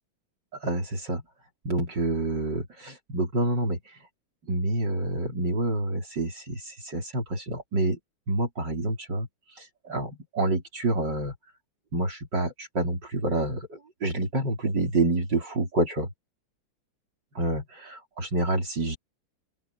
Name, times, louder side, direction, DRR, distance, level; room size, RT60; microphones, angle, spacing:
voice 1, 0.5-1.2 1.6-4.1 4.4-8.0 8.3-9.3 9.5-11.3 11.9-16.1 17.3-19.0, right 2 dB, 60° right, 4.6 m, -28 dB
open air
omnidirectional pair, 2.1 m